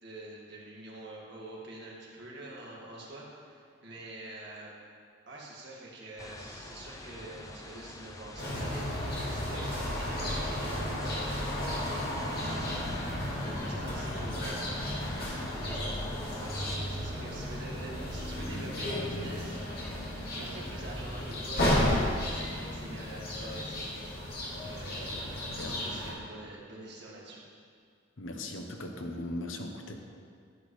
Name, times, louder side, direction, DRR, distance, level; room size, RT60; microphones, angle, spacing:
voice 1, 0.0-4.7 5.3-14.7 15.5-19.6 20.1-23.9 24.4-25.3 25.7-27.4, right 2 dB, 60° right, -4 dB, 2.1 m, -46 dB
sound 1, 6.2-16.8, left 2 dB, 15° left, 0.6 m, -46 dB
sound 2, 8.4-26.1, left 1 dB, 55° left, 2.4 m, -33 dB
voice 2, 28.2-29.9, left 1 dB, 85° left, 3 dB, 1.0 m, -38 dB
10.5 x 10.5 x 3.3 m, 2.2 s
head